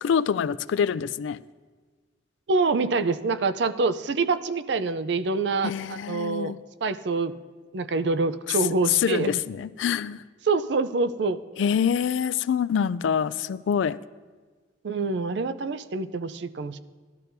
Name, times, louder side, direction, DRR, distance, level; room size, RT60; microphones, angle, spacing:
voice 1, 0.0-1.4 5.6-6.6 8.5-8.6 8.9-10.2 11.6-14.0, left 7 dB, 75° left, 18 dB, 0.3 m, -25 dB
voice 2, 2.5-6.5 6.8-7.3 7.7-9.4 10.5-11.4 14.8-16.8, right 3 dB, 65° right, 12 dB, 0.5 m, -26 dB
16.5 x 12.0 x 2.6 m, 1.4 s
head